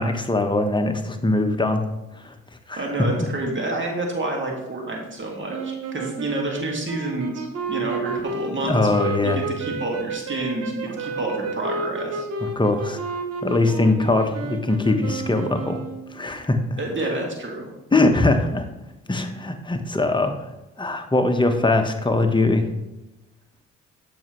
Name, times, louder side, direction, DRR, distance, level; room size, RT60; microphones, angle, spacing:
voice 1, 0.0-1.8 2.1-2.3 2.7-2.9 3.2-3.3 8.6-9.4 12.4-13.0 13.4-15.8 16.1-16.6 17.9-18.7 19.1-20.5 20.8-22.7, left 2 dB, 15° left, 5 dB, 1.0 m, -21 dB
voice 2, 2.8-12.3 16.8-17.7, right 2 dB, 40° right, 0 dB, 2.0 m, -29 dB
sound 1, 5.5-16.2, right 3 dB, 55° right, 1.0 m, -31 dB
7.1 x 5.5 x 3.1 m, 0.94 s
supercardioid pair, 55°, 31 cm